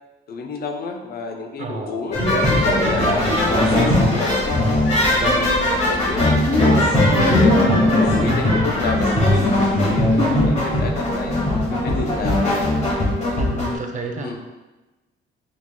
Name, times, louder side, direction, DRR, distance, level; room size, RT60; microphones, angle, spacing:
voice 1, 0.3-2.2 2.8-4.4 5.0-6.4 7.2-12.6 14.1-14.4, left 4 dB, 50° left, 4 dB, 0.5 m, -30 dB
voice 2, 1.6-2.0 3.0-3.2 5.2-5.5 7.1-7.9 13.4-14.4, right 4 dB, 40° right, 4 dB, 0.5 m, -30 dB
sound 1, 2.1-13.7, left 1 dB, 35° left, 1.1 m, -18 dB
5.9 x 2.3 x 2.2 m, 1.1 s
cardioid pair, 90°, 20 cm